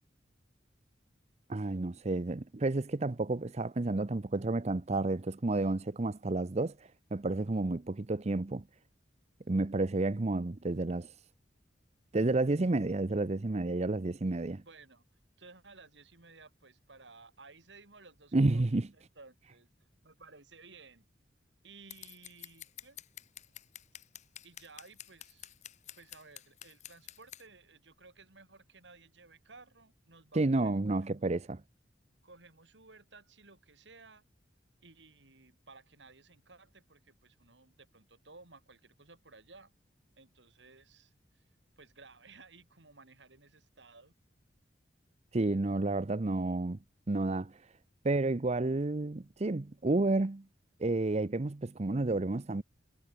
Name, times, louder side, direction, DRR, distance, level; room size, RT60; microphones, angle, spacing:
voice 1, 1.5-6.7 7.1-8.6 9.5-11.1 12.1-14.6 18.3-18.9 30.4-31.6 45.3-46.8 47.1-47.6 48.0-50.4 50.8-52.6, right 2 dB, 35° right, 0.7 m, -30 dB
voice 2, 14.6-15.0 15.4-19.7 20.0-21.1 21.6-23.0 24.4-25.5 26.0-31.0 32.2-34.2 34.8-39.7 40.2-41.4 41.8-44.1, right 3 dB, 80° right, 3.9 m, -57 dB
Scissors, 21.9-27.4, left 11 dB, 40° left, 0.9 m, -49 dB
head